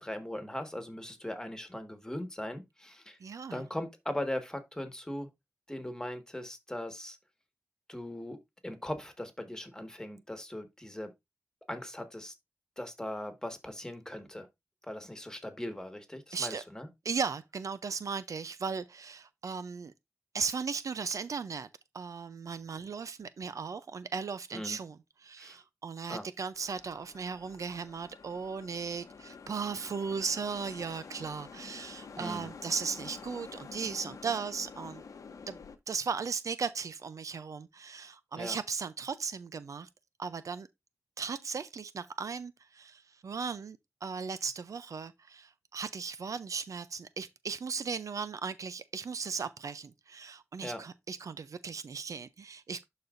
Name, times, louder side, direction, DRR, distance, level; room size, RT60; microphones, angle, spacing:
voice 1, 0.0-3.2 3.5-5.3 5.7-7.2 7.9-8.4 8.6-11.1 11.7-12.3 12.8-14.5 14.9-16.9 24.5-24.8 25.4-25.6 26.1-26.3 32.2-32.5 38.3-38.6 50.6-50.8, left 1 dB, 10° left, 1.6 m, -39 dB
voice 2, 3.2-3.6 16.3-16.6 17.0-19.9 20.3-21.7 21.9-35.0 35.5-35.6 35.9-39.9 40.2-40.7 41.2-52.8, right 5 dB, 75° right, 0.5 m, -37 dB
sound 1, 26.5-35.8, left 5 dB, 85° left, 0.9 m, -49 dB
11.5 x 4.1 x 2.6 m
wide cardioid pair, 70°, 6 cm